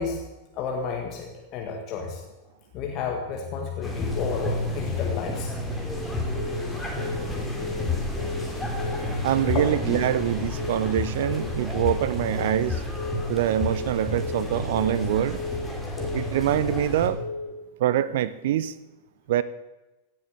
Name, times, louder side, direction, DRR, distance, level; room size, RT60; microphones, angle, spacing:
voice 1, 0.0-2.2 2.7-5.5 6.1-6.2 8.8-9.0 9.3-9.6, left 6 dB, 40° left, 2 dB, 2.0 m, -31 dB
sound 1, 3.8-17.1, left 1 dB, 5° left, 3.2 m, -31 dB
Telephone, 6.4-6.7 7.0-7.3 7.6-7.9 8.2-8.5 8.8-9.1 9.4-9.7 10.0-10.3 10.6-10.9 11.2-11.5 11.8-12.1 12.4-12.7 13.0-13.3 13.6-13.9 14.2-14.5 14.8-15.1 15.4-15.7 16.0-16.3 16.6-16.9 17.2-17.5, left 4 dB, 75° left, 3.6 m, -34 dB
voice 2, 9.2-12.8 13.3-15.4 16.1-17.2 17.8-18.7 19.3-19.4, right 12 dB, 55° right, 17 dB, 0.6 m, -25 dB
16.5 x 7.8 x 8.2 m, 1.0 s
figure-of-eight pair, 90°, 0 cm